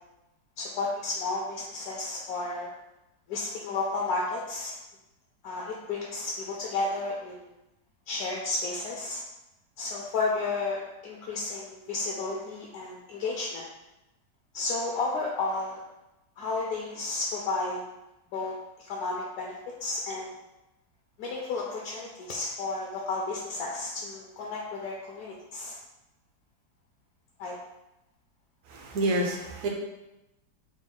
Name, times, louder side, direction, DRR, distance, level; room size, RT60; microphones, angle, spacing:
voice 1, 0.6-2.7 3.3-4.7 5.4-7.5 8.1-9.2 9.8-13.6 14.5-15.8 16.4-17.8 18.3-18.5 18.8-20.4 21.2-25.8 27.4-27.6, left 3 dB, 70° left, -2 dB, 0.9 m, -32 dB
voice 2, 28.7-29.7, right 1 dB, 65° right, 0 dB, 0.8 m, -28 dB
3.9 x 2.2 x 3.6 m, 0.93 s
omnidirectional pair, 1.9 m